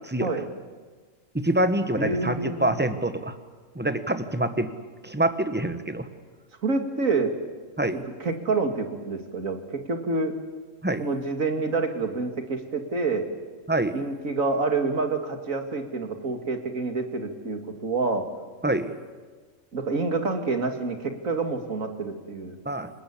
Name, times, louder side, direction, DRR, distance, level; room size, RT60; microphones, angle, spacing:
voice 1, 1.3-3.3 3.7-4.7 5.0-6.1 7.8-8.0 10.8-11.0 13.7-14.0 18.6-18.9 22.6-22.9, right 1 dB, 10° right, 10 dB, 1.2 m, -25 dB
voice 2, 1.9-2.8 6.6-7.3 7.9-10.3 11.0-13.3 13.9-18.3 19.7-22.6, right 3 dB, 75° right, 6 dB, 2.7 m, -27 dB
27.5 x 19.5 x 8.6 m, 1.4 s
omnidirectional pair, 1.4 m